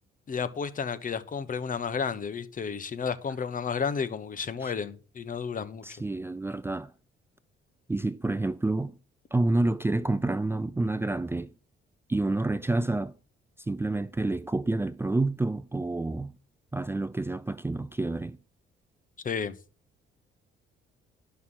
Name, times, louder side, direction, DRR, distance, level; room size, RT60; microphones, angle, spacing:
voice 1, 0.3-5.8 19.2-19.6, left 6 dB, 45° left, 1.1 m, -32 dB
voice 2, 5.8-6.9 7.9-9.0 9.3-11.5 12.1-13.1 13.6-16.3 16.7-18.4, right 2 dB, 10° right, 0.5 m, -28 dB
11.0 x 5.9 x 5.9 m
cardioid pair, 90°, 20 cm